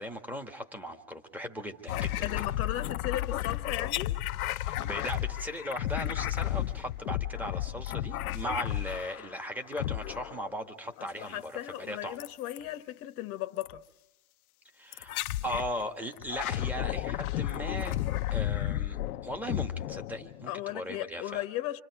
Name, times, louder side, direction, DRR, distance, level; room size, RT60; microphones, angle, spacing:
voice 1, 0.0-2.4 4.6-12.2 14.7-18.0 18.3-19.0 19.2-21.4, equal, 5° right, 1.5 m, -38 dB
sound 1, 1.9-9.3 9.7-10.5 12.2-12.6 13.6-13.8 14.9-15.7 16.2-20.5, left 14 dB, 60° left, 0.8 m, -33 dB
voice 2, 2.2-4.2 11.0-13.8 20.5-21.8, left 13 dB, 30° left, 1.2 m, -36 dB
27.5 x 26.5 x 4.7 m
hypercardioid pair, 130°, 48 cm